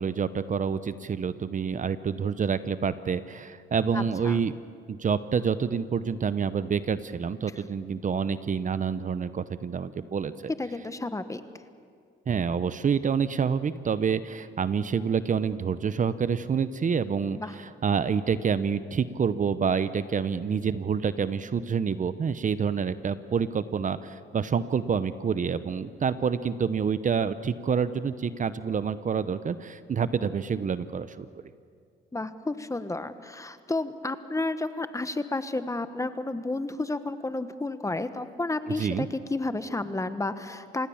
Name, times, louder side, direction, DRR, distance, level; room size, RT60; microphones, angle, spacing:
voice 1, 0.0-4.5 4.9-10.5 12.3-31.3 38.7-39.1, right 6 dB, 40° right, 13 dB, 0.8 m, -27 dB
voice 2, 3.9-4.4 10.6-11.4 17.4-17.5 32.1-40.9, left 2 dB, 15° left, 11 dB, 1.2 m, -31 dB
27.0 x 19.0 x 7.2 m, 2.2 s
cardioid pair, 90°, 20 cm